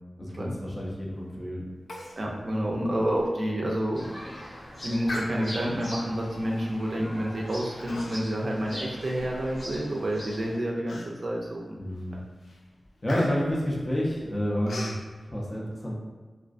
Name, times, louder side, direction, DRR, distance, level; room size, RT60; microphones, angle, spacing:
voice 1, 0.2-1.7 11.8-12.2 13.0-15.0 15.3-15.9, equal, 25° left, -4 dB, 0.5 m, -29 dB
Human voice, 1.9-2.2 2.5-2.6 3.1-3.3 3.8-4.1 5.0-5.8 6.5-6.8 7.8-8.4 8.8-9.8 10.3-10.4 10.9-11.4 11.9-12.1 12.4-15.0, left 1 dB, 80° left, 0.4 m, -39 dB
voice 2, 2.2-4.1 4.8-11.9, equal, 45° right, -2 dB, 0.4 m, -29 dB
sound 1, 3.9-10.6, equal, 55° left, 1.0 m, -41 dB
2.3 x 2.3 x 2.4 m, 1.4 s
wide cardioid pair, 105°, 0 cm